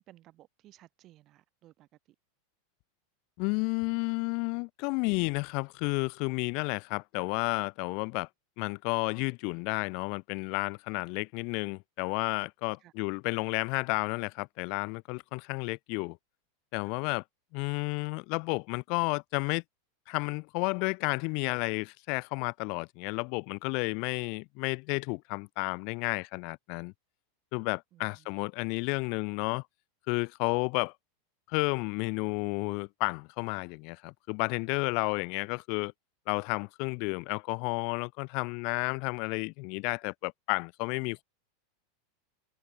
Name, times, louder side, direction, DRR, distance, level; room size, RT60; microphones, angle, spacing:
voice 1, 0.0-1.9 12.8-12.9 26.1-26.2 27.9-28.3, right 15 dB, 35° right, 3.1 m, -58 dB
voice 2, 3.4-8.3 8.6-16.2 16.7-17.2 17.5-19.6 20.1-26.9 27.5-29.6 30.1-30.9 31.5-35.9 36.3-41.2, left 34 dB, 50° left, 0.5 m, -32 dB
supercardioid pair, 140°, 0 cm